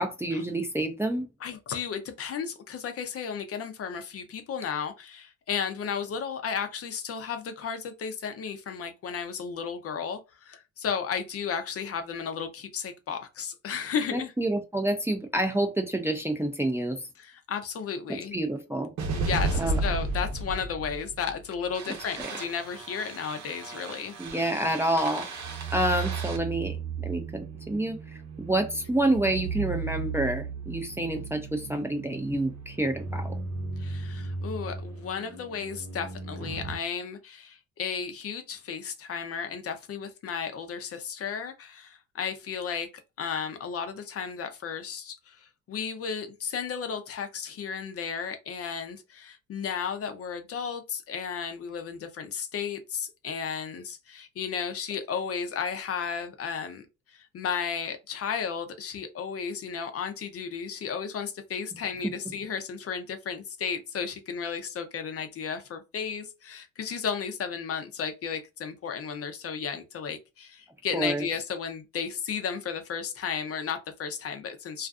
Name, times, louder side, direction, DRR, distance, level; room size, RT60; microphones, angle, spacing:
voice 1, 0.0-1.3 14.1-17.0 18.1-18.9 19.6-19.8 22.2-22.3 24.2-25.3 25.7-28.0 28.4-33.4 70.9-71.2, right 1 dB, 10° right, 0.4 m, -28 dB
voice 2, 1.4-14.3 17.2-18.4 19.1-24.2 33.8-42.9 43.2-74.9, left 6 dB, 50° left, 0.5 m, -34 dB
sound 1, 19.0-36.8, right 4 dB, 65° right, 0.8 m, -34 dB
2.4 x 2.4 x 2.3 m
cardioid pair, 90°, 30 cm